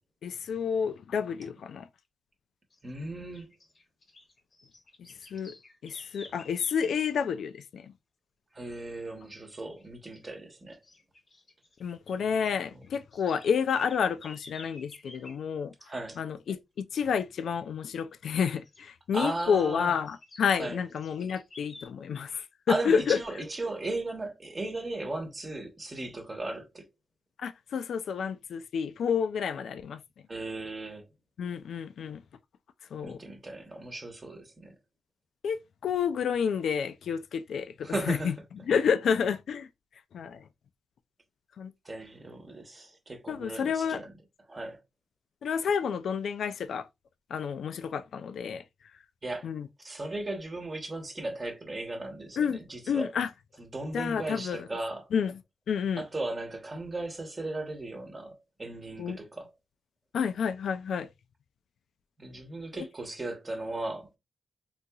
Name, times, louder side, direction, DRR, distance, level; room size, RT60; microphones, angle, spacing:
voice 1, 0.2-1.9 5.3-5.5 5.8-7.9 11.8-15.7 16.2-23.4 27.4-30.0 31.4-32.2 32.9-33.2 35.4-38.3 38.7-39.7 40.1-40.4 41.6-41.7 43.3-44.0 45.4-46.9 47.3-48.6 49.4-49.7 52.4-53.3 53.9-54.7 55.1-55.3 55.7-56.0 59.0-59.2 60.1-61.1 62.7-62.9, left 7 dB, 85° left, 0.3 m, -30 dB
sound 1, 2.7-2.9 3.3-7.0 9.6-9.9 10.1-10.3 10.7-12.2 12.4-15.4 18.4-18.8 19.3-21.9, left 2 dB, 35° left, 0.9 m, -52 dB
voice 2, 2.8-3.5 8.5-10.8 15.9-16.2 19.1-19.9 20.6-20.8 22.7-26.9 30.3-31.0 33.0-34.7 37.8-38.3 41.8-44.1 44.5-44.8 49.2-49.5 49.8-53.1 53.6-55.1 56.0-59.5 62.2-64.2, right 2 dB, 25° right, 1.0 m, -36 dB
3.9 x 2.8 x 2.3 m
wide cardioid pair, 160°, 0 cm